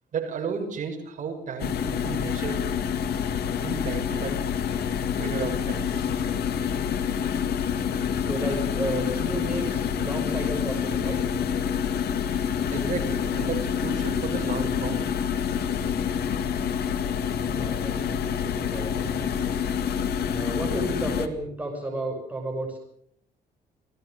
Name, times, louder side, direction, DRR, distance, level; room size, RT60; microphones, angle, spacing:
voice 1, 0.1-2.6 3.6-4.3 5.2-6.0 12.7-15.1, right 6 dB, 50° right, 3 dB, 6.4 m, -33 dB
sound 1, 1.6-21.3, left 7 dB, 75° left, 2.1 m, -27 dB
voice 2, 8.1-11.2 17.4-19.4 20.2-22.8, right 1 dB, 10° right, 0 dB, 6.6 m, -33 dB
29.0 x 18.5 x 6.7 m, 0.67 s
cardioid pair, 165°, 16 cm